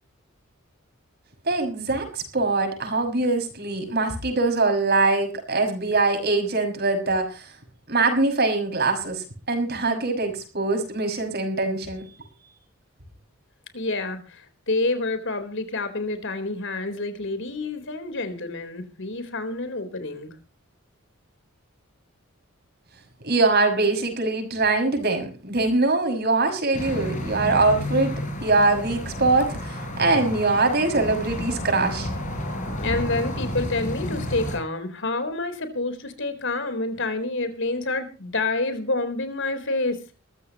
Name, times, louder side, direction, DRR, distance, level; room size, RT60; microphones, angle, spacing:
voice 1, 1.4-7.5 7.9-12.0 23.2-28.1 28.4-32.1, right 3 dB, 50° right, 6 dB, 6.1 m, -23 dB
voice 2, 13.7-20.3 32.8-40.0, left 2 dB, 60° left, 9 dB, 4.0 m, -28 dB
sound 1, 26.7-34.6, left 1 dB, 35° left, 6.3 m, -31 dB
22.5 x 15.5 x 3.0 m, 0.35 s
head